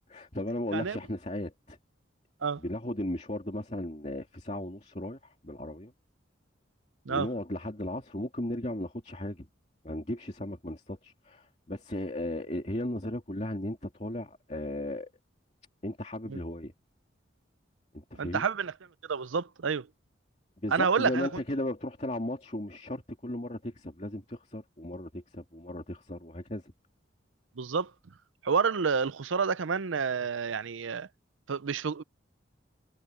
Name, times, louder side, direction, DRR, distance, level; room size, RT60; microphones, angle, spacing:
voice 1, 0.1-1.8 2.6-5.9 7.1-9.5 9.8-15.1 15.8-16.7 17.9-18.4 20.6-26.7, left 1 dB, 35° left, 2.6 m, -36 dB
voice 2, 18.2-18.7 19.1-19.9 20.7-21.3 27.6-27.9 28.4-31.1 31.5-32.0, right 5 dB, 85° right, 0.6 m, -29 dB
head